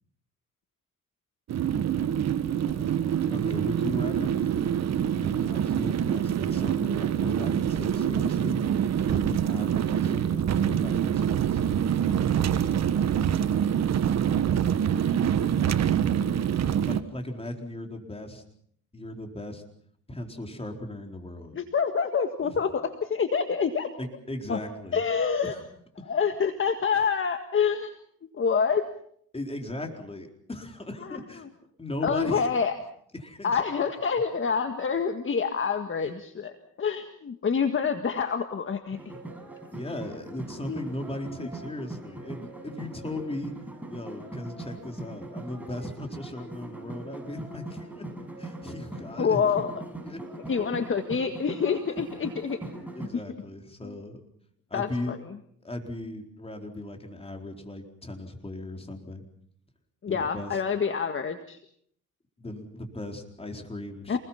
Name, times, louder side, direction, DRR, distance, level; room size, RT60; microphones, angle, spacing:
sound 1, 1.5-17.0, right 9 dB, 60° right, 1.5 m, -25 dB
voice 1, 3.3-4.6 5.1-8.6 9.1-11.6 16.9-18.4 18.9-19.6 20.1-21.5 22.4-22.5 24.0-25.0 25.4-25.6 26.0-26.1 29.3-31.5 31.8-32.5 33.1-33.8 39.7-43.5 43.9-48.1 48.4-49.4 50.0-50.2 52.9-54.2 54.7-55.1 55.6-59.2 60.1-60.6 62.4-64.2, left 1 dB, 20° left, 4 dB, 4.3 m, -37 dB
voice 2, 21.5-23.9 24.5-24.6 24.9-25.5 26.1-27.9 28.3-28.8 31.0-31.5 32.0-32.7 33.4-36.5 36.8-39.0 40.7-40.9 49.2-49.7 50.5-52.9 53.8-54.0 54.7-55.2 60.0-61.6 64.1-64.2, left 6 dB, 40° left, 7 dB, 1.8 m, -27 dB
sound 2, 38.9-53.1, right 2 dB, 5° right, 6.2 m, -41 dB
27.5 x 21.0 x 5.8 m, 0.65 s
cardioid pair, 90°, 30 cm